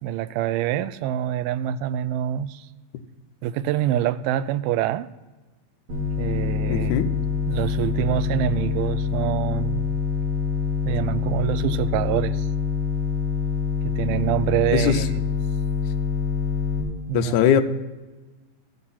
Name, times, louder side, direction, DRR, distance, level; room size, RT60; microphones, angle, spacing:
voice 1, 0.0-2.7 3.4-5.1 6.2-7.0 7.5-9.8 10.9-12.5 13.8-15.1 17.1-17.4, right 12 dB, 85° right, 15 dB, 2.4 m, -25 dB
sound 1, 5.9-16.8, left 6 dB, 55° right, 4.3 m, -25 dB
voice 2, 6.7-7.1 14.7-15.0 17.1-17.6, left 9 dB, 80° left, 6 dB, 1.7 m, -20 dB
14.5 x 8.5 x 4.1 m, 1.2 s
omnidirectional pair, 4.3 m